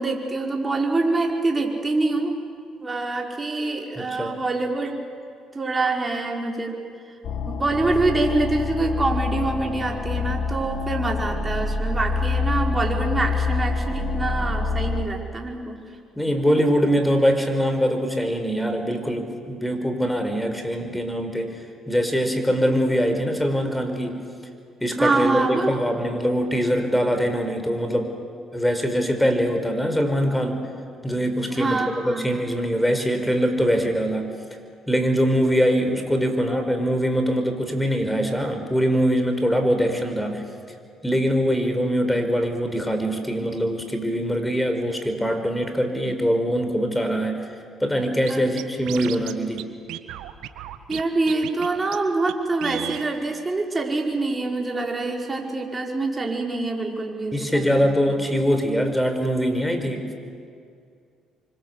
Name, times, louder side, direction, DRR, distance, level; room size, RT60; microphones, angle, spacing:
voice 1, 0.0-2.4 2.8-4.9 5.5-6.7 7.5-15.8 25.0-25.7 31.5-32.3 48.3-48.5 50.9-58.1, right 3 dB, 25° right, 1 dB, 5.4 m, -25 dB
voice 2, 4.0-4.4 16.2-21.5 21.9-24.2 24.8-28.1 28.5-30.6 31.0-34.3 34.9-40.4 41.0-47.4 47.8-49.7 57.3-60.1, equal, 5° left, 6 dB, 5.2 m, -23 dB
sound 1, 7.2-15.0, left 4 dB, 65° left, 2.7 m, -26 dB
Scratching (performance technique), 48.3-48.4 48.6-49.3 49.6-49.7 49.9-51.0 51.3-51.7 51.9-52.0 52.3-52.4 52.6-53.1, right 13 dB, 80° right, 1.4 m, -33 dB
28.5 x 25.0 x 8.4 m, 2.3 s
supercardioid pair, 70°, 0 cm